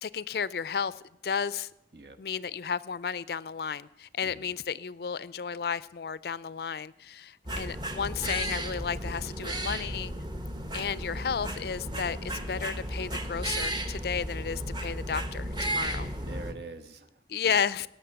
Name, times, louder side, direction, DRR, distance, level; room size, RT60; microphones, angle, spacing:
voice 1, 0.0-0.9 1.2-1.7 2.2-10.1 10.7-16.1 17.3-17.9, left 6 dB, 60° left, 18 dB, 0.4 m, -33 dB
voice 2, 4.2-4.5 15.8-15.9 16.2-17.9, right 3 dB, 65° right, 7 dB, 1.1 m, -46 dB
sound 1, 7.4-16.5, right 1 dB, 25° right, 1.0 m, -34 dB
18.0 x 6.4 x 8.7 m, 0.84 s
head